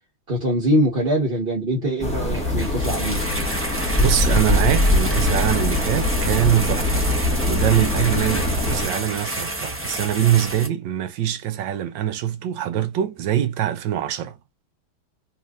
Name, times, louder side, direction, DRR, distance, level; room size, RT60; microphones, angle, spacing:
voice 1, 0.3-3.3, equal, 30° right, 1.2 m, -23 dB
sound 1, 2.0-8.9, left 2 dB, 5° left, 1.2 m, -22 dB
sound 2, 2.3-10.7, right 1 dB, 15° right, 0.5 m, -29 dB
voice 2, 4.0-7.1 7.4-14.4, right 11 dB, 70° right, 1.2 m, -23 dB
4.2 x 2.9 x 2.4 m
omnidirectional pair, 2.3 m